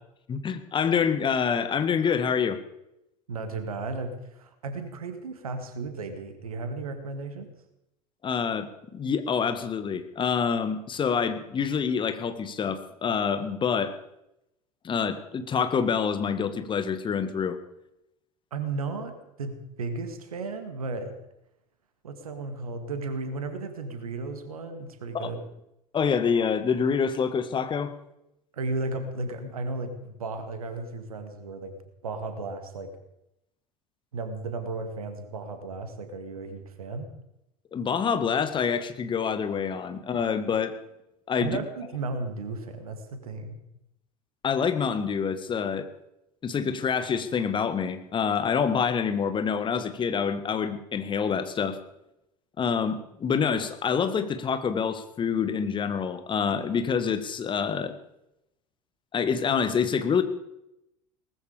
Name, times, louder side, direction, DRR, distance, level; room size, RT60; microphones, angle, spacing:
voice 1, 0.3-2.6 8.2-13.9 14.8-17.6 25.1-25.3 25.9-27.9 37.7-40.8 41.3-41.6 44.4-45.9 46.4-51.8 52.6-57.9 59.1-60.2, left 6 dB, 25° left, 10 dB, 1.7 m, -26 dB
voice 2, 3.3-7.5 18.5-21.2 22.0-25.4 28.5-31.7 32.0-32.9 34.1-37.1 41.4-43.6, right 3 dB, 70° right, 8 dB, 2.1 m, -34 dB
19.0 x 14.5 x 5.2 m, 0.83 s
figure-of-eight pair, 75°, 19 cm